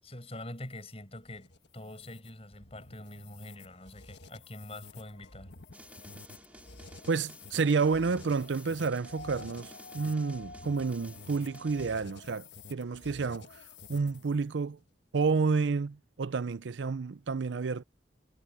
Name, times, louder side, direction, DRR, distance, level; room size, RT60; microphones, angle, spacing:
voice 1, 0.0-5.5, left 1 dB, 35° left, 7.7 m, -45 dB
sound 1, 0.6-14.4, left 4 dB, 70° left, 1.6 m, -51 dB
sound 2, 5.7-12.0, right 1 dB, 10° right, 2.5 m, -54 dB
voice 2, 7.1-13.6 13.9-14.8 15.1-17.8, right 4 dB, 85° right, 0.5 m, -30 dB
sound 3, 9.0-12.2 13.6-13.7, left 2 dB, 50° left, 5.3 m, -49 dB
head